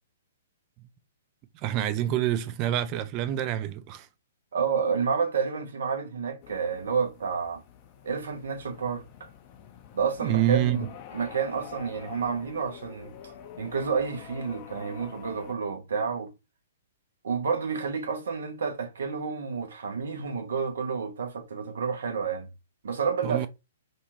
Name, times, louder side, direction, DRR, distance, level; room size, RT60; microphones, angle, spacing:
voice 1, 1.5-4.1 10.2-10.9 23.2-23.5, right 12 dB, 30° right, 0.3 m, -27 dB
voice 2, 4.5-7.6 8.0-9.3 9.9-10.8 11.1-16.3 17.2-22.5 22.8-23.5, right 6 dB, 65° right, 0.7 m, -30 dB
sound 1, 6.4-15.5, left 9 dB, 35° left, 0.5 m, -47 dB
2.6 x 2.3 x 2.9 m
figure-of-eight pair, 115°, 0 cm